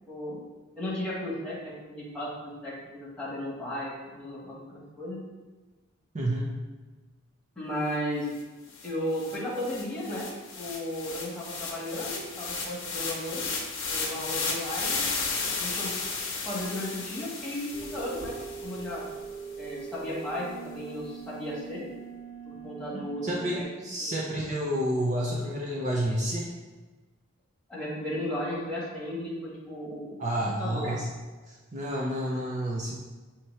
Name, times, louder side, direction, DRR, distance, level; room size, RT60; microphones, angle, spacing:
voice 1, 0.1-0.4 0.8-5.2 7.5-8.3 8.8-10.3 10.6-13.6 13.9-15.1 15.4-15.9 16.4-18.3 18.6-19.0 19.6-21.8 22.4-23.6 27.7-30.9, left 1 dB, 5° left, -8 dB, 1.4 m, -35 dB
voice 2, 6.1-6.5 23.2-26.5 30.2-31.1 31.5-33.0, equal, 35° right, -3 dB, 0.5 m, -30 dB
sound 1, 8.4-8.5 8.7-19.1, left 4 dB, 85° left, 0.9 m, -34 dB
sound 2, 17.7-23.6, right 6 dB, 40° left, 0.5 m, -42 dB
5.7 x 2.8 x 3.2 m, 1.3 s
head